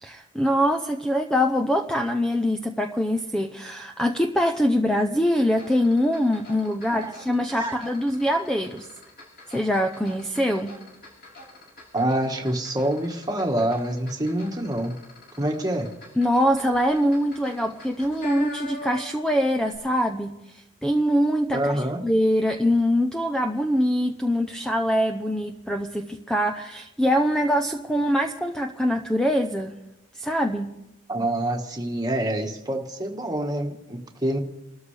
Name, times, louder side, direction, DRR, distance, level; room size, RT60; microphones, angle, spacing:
voice 1, 0.0-8.9 9.5-10.8 16.2-29.8 30.1-30.7, equal, 5° left, 4 dB, 0.6 m, -23 dB
sound 1, 5.5-19.3 19.6-19.8, left 2 dB, 50° left, 6.8 m, -44 dB
voice 2, 11.9-14.9 15.4-15.9 21.5-22.0 31.1-34.4, right 1 dB, 20° right, 2 dB, 1.6 m, -26 dB
29.5 x 13.5 x 3.4 m, 0.96 s
head